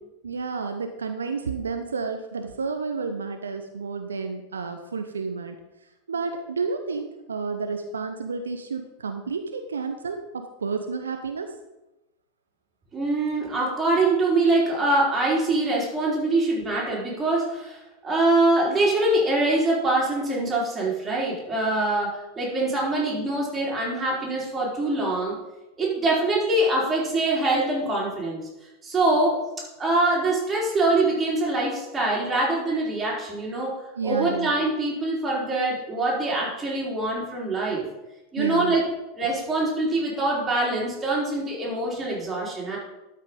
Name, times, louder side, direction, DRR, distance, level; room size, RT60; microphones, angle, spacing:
voice 1, 0.2-5.5 6.1-11.5 34.0-34.5 38.4-38.8, right 4 dB, 75° right, 6 dB, 0.7 m, -31 dB
voice 2, 12.9-25.4 25.8-28.4 28.8-29.4 29.8-33.7 34.0-37.8 38.3-38.9 39.2-42.8, right 2 dB, 20° right, -4 dB, 4.1 m, -24 dB
12.0 x 5.6 x 5.3 m, 0.98 s
figure-of-eight pair, 85°, 0 cm